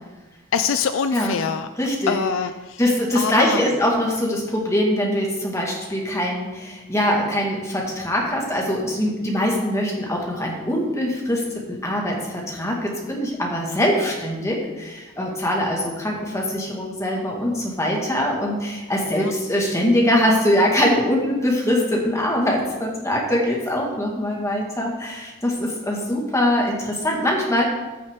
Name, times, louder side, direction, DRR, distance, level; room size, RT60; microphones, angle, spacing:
voice 1, 0.5-1.7 2.1-2.8 3.1-3.6 14.4-14.5 19.1-19.3, left 6 dB, 65° left, 10 dB, 0.4 m, -24 dB
voice 2, 1.8-2.2 2.8-27.6, left 1 dB, 15° left, -1 dB, 1.8 m, -22 dB
14.0 x 6.5 x 3.7 m, 1.1 s
head